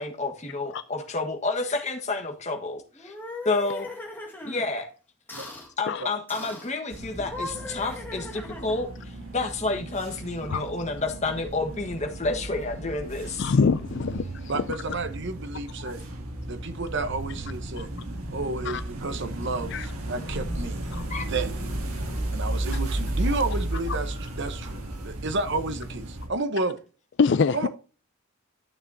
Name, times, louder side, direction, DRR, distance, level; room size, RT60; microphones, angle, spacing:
voice 1, 0.0-3.1 3.4-3.9 4.4-4.9 5.8-8.9 9.3-13.5 21.1-21.3, left 3 dB, 30° left, 1.5 m, -29 dB
sound 1, 2.9-4.6 5.3-5.7 6.3-6.7 7.2-8.9, left 2 dB, 10° left, 1.8 m, -39 dB
sound 2, 6.9-26.3, right 1 dB, 85° right, 2.5 m, -34 dB
voice 2, 13.4-14.6 15.9-16.0 17.8-17.9 18.6-18.8 19.7-19.9 20.9-21.1 27.2-27.7, left 5 dB, 55° left, 0.4 m, -24 dB
voice 3, 14.5-16.0 16.5-17.9 18.3-20.8 21.1-21.5 22.3-26.8 27.5-27.7, right 3 dB, 55° right, 1.0 m, -31 dB
12.5 x 6.8 x 2.7 m
head